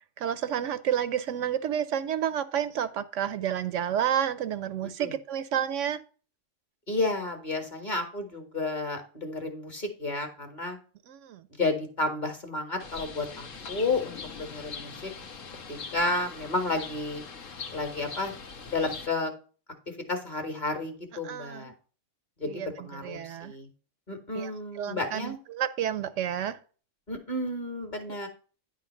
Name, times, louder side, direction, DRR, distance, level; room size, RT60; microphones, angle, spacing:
voice 1, 0.2-6.0 11.1-11.4 21.2-21.7 22.4-23.5 24.3-24.5 24.8-26.6, right 9 dB, 75° right, 13 dB, 0.9 m, -30 dB
voice 2, 6.9-10.8 11.6-15.1 15.7-17.2 17.7-18.3 18.7-19.3 20.1-21.7 22.4-23.7 24.1-25.4 27.1-28.3, left 2 dB, 35° left, 4 dB, 1.7 m, -31 dB
Bird, 12.8-19.1, left 5 dB, 85° left, 1.4 m, -42 dB
9.9 x 3.8 x 5.4 m, 0.38 s
omnidirectional pair, 1.3 m